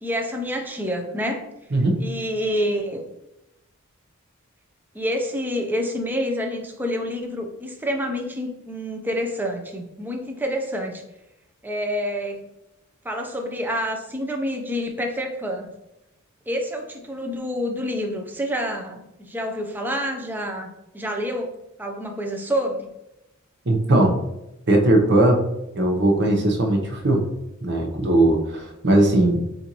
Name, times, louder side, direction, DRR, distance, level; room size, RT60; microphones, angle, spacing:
voice 1, 0.0-1.5 2.0-3.0 4.9-11.0 11.6-12.5 13.0-15.7 16.5-22.9, equal, 10° right, 2 dB, 0.6 m, -28 dB
voice 2, 23.7-24.2 24.7-25.4 25.7-27.2 27.6-29.5, right 1 dB, 55° right, 2 dB, 0.8 m, -19 dB
6.8 x 2.6 x 3.0 m, 0.90 s
head